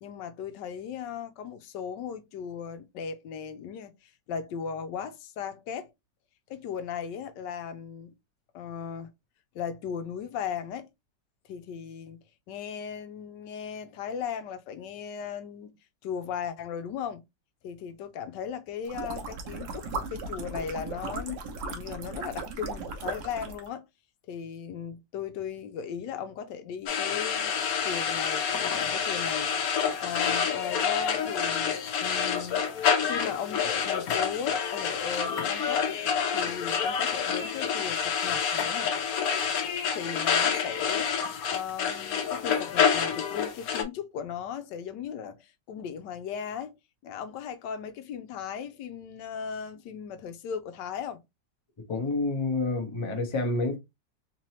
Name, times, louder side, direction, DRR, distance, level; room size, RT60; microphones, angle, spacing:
voice 1, 0.0-5.9 6.5-8.1 8.5-9.1 9.5-10.9 11.5-12.2 12.5-15.7 16.0-17.2 17.6-23.8 24.3-27.5 27.8-32.6 33.1-36.0 36.3-38.9 39.9-46.7 47.0-51.2, left 7 dB, 80° left, 1.2 m, -37 dB
sound 1, 18.8-23.7, right 3 dB, 70° right, 1.4 m, -37 dB
sound 2, 26.9-43.8, left 7 dB, 60° left, 1.1 m, -28 dB
voice 2, 51.9-53.8, left 2 dB, 25° left, 0.6 m, -28 dB
3.7 x 3.0 x 2.8 m
omnidirectional pair, 1.9 m